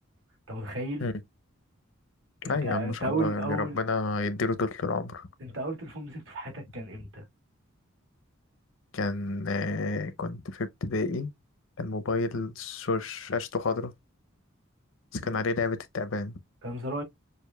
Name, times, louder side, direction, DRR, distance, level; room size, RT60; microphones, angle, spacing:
voice 1, 0.5-1.1 2.4-3.8 5.4-7.2 16.6-17.0, right 2 dB, 65° right, 1.8 m, -34 dB
voice 2, 2.4-5.3 8.9-11.3 11.8-13.9 15.1-16.4, left 3 dB, 70° left, 0.6 m, -30 dB
6.5 x 2.6 x 2.2 m
head